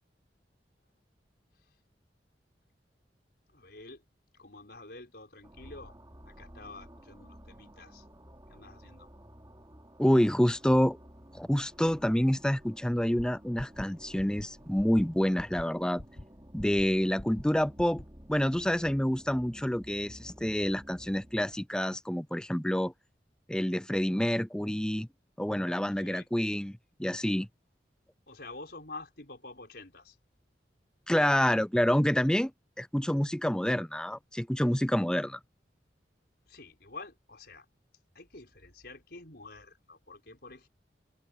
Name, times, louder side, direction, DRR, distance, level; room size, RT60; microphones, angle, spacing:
voice 1, 3.5-4.0 4.3-5.9 6.3-8.0 8.5-9.1 26.0-26.3 28.3-30.2 36.5-37.7 38.1-40.7, left 3 dB, 60° left, 5.8 m, -48 dB
sound 1, 5.4-21.6, equal, 20° right, 4.6 m, -53 dB
voice 2, 10.0-11.0 11.3-16.0 16.5-18.0 18.3-22.9 23.5-25.1 25.4-27.5 31.1-32.5 32.8-35.4, equal, 5° left, 0.5 m, -28 dB
sound 2, 13.2-13.3 13.6-13.9 14.2-14.4 14.8-15.0 15.4-15.6 16.0-16.2 16.6-16.8 17.2-17.4 17.8-18.0, left 1 dB, 35° left, 1.9 m, -43 dB
open air
head